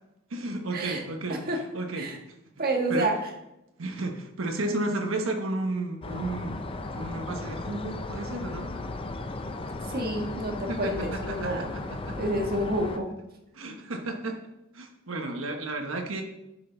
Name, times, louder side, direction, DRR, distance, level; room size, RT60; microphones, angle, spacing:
voice 1, 0.3-2.1 2.9-3.1 3.8-6.6 6.9-8.7 10.7-12.3 13.5-14.4 14.7-16.2, right 2 dB, 90° right, 3 dB, 1.2 m, -33 dB
voice 2, 2.6-3.2 9.9-11.7 12.2-13.1, right 1 dB, 50° right, 2 dB, 1.5 m, -29 dB
sound 1, 6.0-13.0, left 2 dB, 25° left, 0.6 m, -36 dB
10.0 x 6.2 x 3.9 m, 0.89 s
head